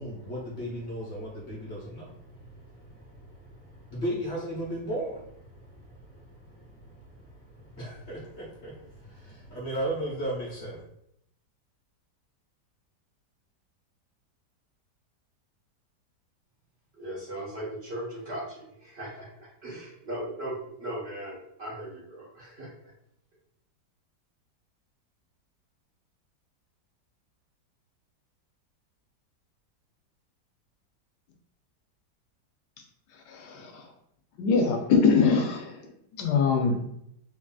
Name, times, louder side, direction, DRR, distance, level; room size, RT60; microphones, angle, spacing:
voice 1, 0.0-10.8, right 1 dB, 45° left, -5 dB, 1.1 m, -36 dB
voice 2, 16.9-22.9, right 1 dB, 45° right, -8 dB, 1.1 m, -38 dB
voice 3, 33.3-33.7 34.4-35.7 36.2-36.7, left 5 dB, 80° left, 3 dB, 1.2 m, -22 dB
3.4 x 2.6 x 2.2 m, 0.74 s
omnidirectional pair, 1.9 m